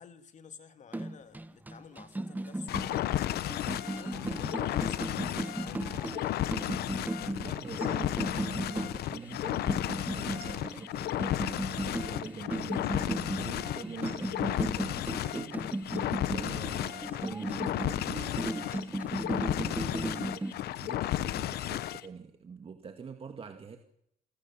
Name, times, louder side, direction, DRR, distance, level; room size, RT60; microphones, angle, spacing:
voice 1, 0.0-6.0, left 7 dB, 45° left, 2.5 m, -52 dB
sound 1, 0.9-20.5, right 2 dB, 10° right, 1.2 m, -36 dB
sound 2, 2.7-22.1, left 13 dB, 70° left, 1.0 m, -33 dB
voice 2, 7.4-15.6 16.3-19.0 19.7-23.8, right 5 dB, 35° right, 2.1 m, -45 dB
28.0 x 18.0 x 7.5 m
cardioid pair, 110°, 17 cm